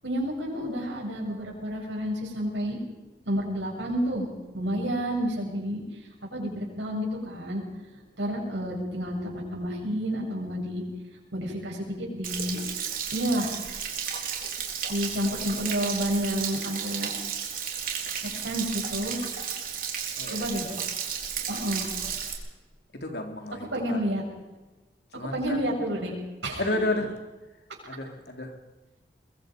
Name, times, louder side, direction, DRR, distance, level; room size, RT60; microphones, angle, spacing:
voice 1, 0.0-2.8 3.2-4.3 4.5-5.8 6.3-7.6 8.2-10.8 11.3-12.6 13.1-13.6 14.9-17.1 18.2-19.2 20.3-20.7 21.5-21.9 23.7-24.2 25.1-26.2 26.4-26.6, equal, 80° right, -1 dB, 7.4 m, -30 dB
Stream / Splash splatter / Trickle dribble, 12.2-22.3, right 7 dB, 50° right, 3.8 m, -33 dB
voice 2, 20.2-20.6 22.9-24.0 25.1-25.7 26.6-27.1 27.8-28.6, left 2 dB, 65° left, 3 dB, 3.4 m, -32 dB
23.5 x 22.5 x 5.3 m, 1.2 s
head